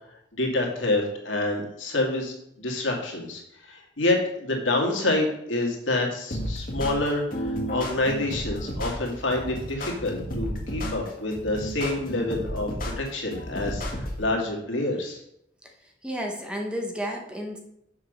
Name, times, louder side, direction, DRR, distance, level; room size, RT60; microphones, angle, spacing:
voice 1, 0.3-3.4 3.7-15.2, left 2 dB, 90° left, 0 dB, 2.2 m, -27 dB
sound 1, 6.3-14.3, equal, 45° left, 1.6 m, -32 dB
voice 2, 16.0-17.6, equal, 5° right, 1 dB, 1.2 m, -32 dB
7.2 x 5.2 x 6.6 m, 0.76 s
head